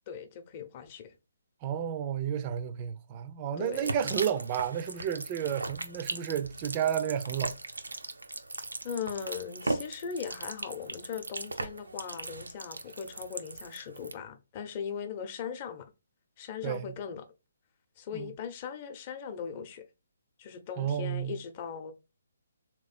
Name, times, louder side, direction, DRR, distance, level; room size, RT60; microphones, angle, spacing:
voice 1, 0.1-1.1 3.6-3.9 8.8-15.9 16.4-17.2 18.0-19.9 20.4-21.9, left 7 dB, 35° left, 0.7 m, -39 dB
voice 2, 1.6-7.6 8.6-8.7 16.6-16.9 18.1-18.3 20.8-21.4, right 9 dB, 30° right, 0.5 m, -32 dB
sound 1, 3.7-14.1, right 2 dB, 85° right, 0.6 m, -38 dB
3.6 x 3.0 x 4.2 m
figure-of-eight pair, 140°, 0 cm